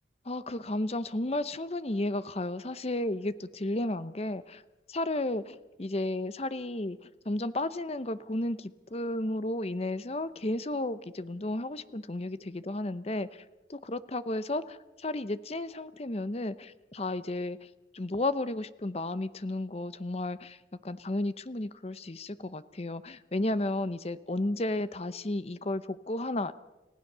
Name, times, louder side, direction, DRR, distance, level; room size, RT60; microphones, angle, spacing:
voice 1, 0.2-4.6 4.9-13.4 13.7-26.5, left 1 dB, 30° left, 14 dB, 0.8 m, -33 dB
30.0 x 16.0 x 6.8 m, 1.1 s
head